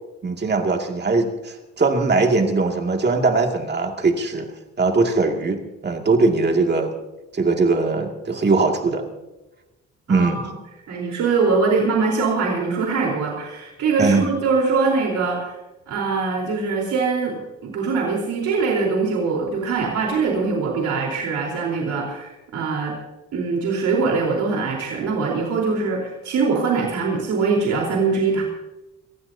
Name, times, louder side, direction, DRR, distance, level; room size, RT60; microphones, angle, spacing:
voice 1, 0.2-4.5 4.8-6.9 7.3-9.0 10.1-10.4 14.0-14.3, right 3 dB, 35° right, 3 dB, 2.3 m, -20 dB
voice 2, 10.1-10.5 10.9-15.5 15.9-22.9 23.3-28.4, right 4 dB, 75° right, -1 dB, 4.1 m, -22 dB
27.0 x 15.5 x 2.8 m, 1.0 s
cardioid pair, 90°, 30 cm